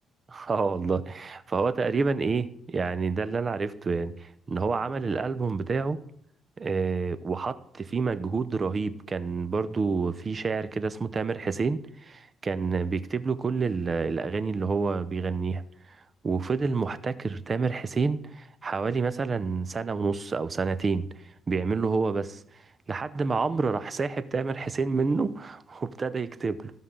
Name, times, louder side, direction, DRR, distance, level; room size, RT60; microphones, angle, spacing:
voice 1, 0.3-6.0 6.6-15.6 16.2-21.1 21.5-22.4 22.9-26.7, right 4 dB, 35° right, 0.6 m, -28 dB
14.5 x 5.5 x 3.7 m
cardioid pair, 90°, 0 cm